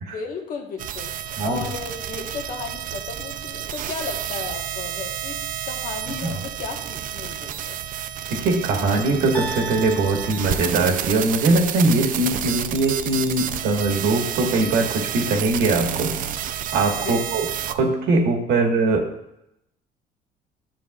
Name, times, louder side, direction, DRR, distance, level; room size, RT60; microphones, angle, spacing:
voice 1, 0.1-7.8 16.9-17.6 18.5-18.7, left 5 dB, 55° left, 2 dB, 1.3 m, -35 dB
sound 1, 0.8-17.7, right 10 dB, 55° right, 0.4 m, -30 dB
voice 2, 8.3-16.1 16.7-19.0, right 3 dB, 80° right, 2 dB, 1.5 m, -21 dB
sound 2, 9.3-11.5, right 2 dB, 10° left, 0.8 m, -36 dB
11.0 x 6.7 x 2.4 m, 0.81 s
cardioid pair, 110°, 17 cm